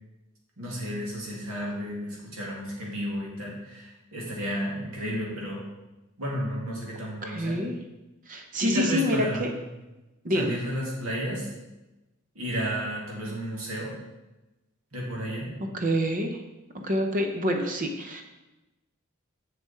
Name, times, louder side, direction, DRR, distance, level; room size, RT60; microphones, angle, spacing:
voice 1, 0.6-5.6 6.2-7.6 8.6-9.6 10.3-11.5 12.3-13.9 14.9-15.5, equal, 80° right, -4 dB, 2.6 m, -32 dB
voice 2, 7.3-7.7 8.3-9.5 10.2-10.6 15.7-16.4 16.7-18.2, equal, 40° right, 4 dB, 0.7 m, -27 dB
7.1 x 6.9 x 4.3 m, 1.0 s
head